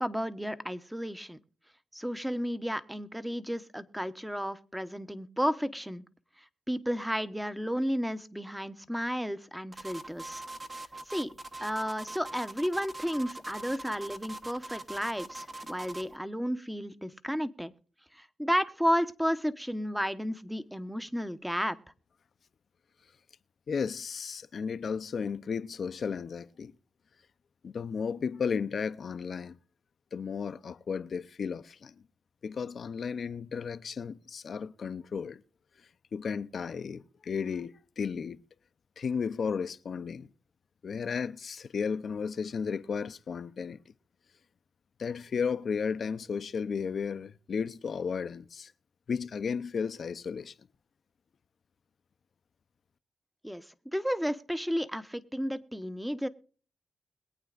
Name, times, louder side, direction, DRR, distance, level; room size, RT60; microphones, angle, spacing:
voice 1, 0.0-1.4 1.9-6.0 6.7-10.4 11.1-11.3 11.6-17.7 18.1-21.8 53.4-53.6 53.9-56.3, equal, 5° right, 1.0 m, -32 dB
sound 1, 9.7-16.1, right 2 dB, 35° right, 1.3 m, -42 dB
voice 2, 23.7-26.7 27.6-29.6 30.1-31.9 32.4-35.4 36.1-38.4 39.0-40.3 40.8-43.8 45.0-48.7 49.1-50.5, left 6 dB, 65° left, 0.6 m, -34 dB
22.0 x 8.9 x 2.5 m
cardioid pair, 60°, 0 cm